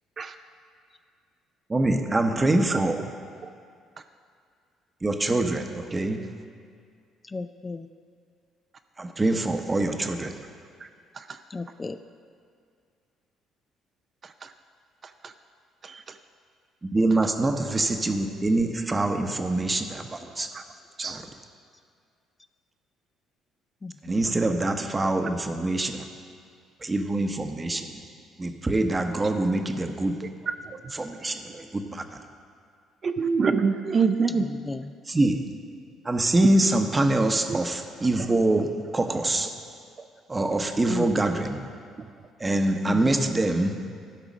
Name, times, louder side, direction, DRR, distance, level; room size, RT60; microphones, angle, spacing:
voice 1, 1.7-3.0 5.0-6.3 9.0-10.3 16.8-20.5 21.0-21.2 24.0-26.0 26.8-28.0 28.4-30.2 31.0-32.2 35.1-35.5 36.0-39.5 40.3-41.6 42.4-43.8, right 2 dB, 25° right, 6 dB, 0.9 m, -25 dB
voice 2, 2.7-3.0 3.4-3.5 10.8-10.9 11.1-11.4 14.2-14.5 15.0-15.3 15.8-16.2 20.5-20.6 21.0-21.2 25.0-25.1 30.6-30.8 33.0-34.5 36.4-36.5 37.5-37.6 38.2-38.3 40.0-40.1 42.0-42.1, right 5 dB, 45° right, 8 dB, 0.4 m, -27 dB
voice 3, 7.2-7.9 11.5-12.0 23.8-24.2 34.7-34.8 40.9-41.2 42.9-43.2, left 3 dB, 25° left, 10 dB, 0.4 m, -34 dB
12.5 x 4.8 x 6.2 m, 2.2 s
supercardioid pair, 70°, 0 cm